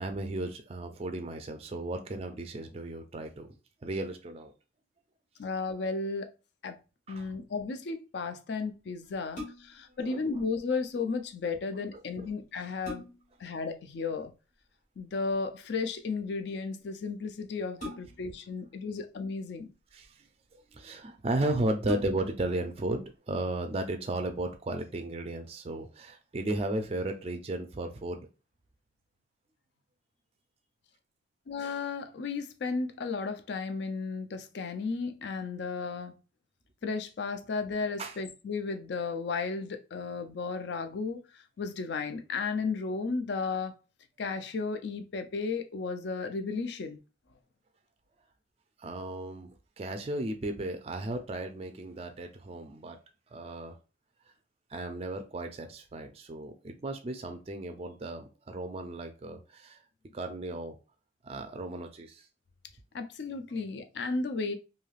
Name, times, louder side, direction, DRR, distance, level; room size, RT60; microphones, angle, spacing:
voice 1, 0.0-3.6 3.8-4.5 7.1-7.3 10.0-10.3 12.2-12.3 17.9-18.0 19.9-20.2 20.5-28.2 38.0-38.2 48.8-53.0 53.3-53.7 54.7-59.8 60.1-60.8 61.2-62.2, right 2 dB, 30° right, 0.4 m, -35 dB
voice 2, 5.4-6.3 6.6-6.8 7.1-13.1 13.4-14.3 15.0-19.7 31.5-36.2 36.8-43.7 44.2-47.0 62.9-64.5, left 4 dB, 60° left, 0.4 m, -34 dB
sound 1, 9.3-9.9 11.9-12.0 12.5-13.4 15.0-15.3 17.8-18.4 19.4-20.1 20.8-20.9 21.2-21.3 21.8-22.5 23.0-23.1, left 2 dB, 40° left, 1.3 m, -42 dB
3.2 x 2.7 x 2.3 m
head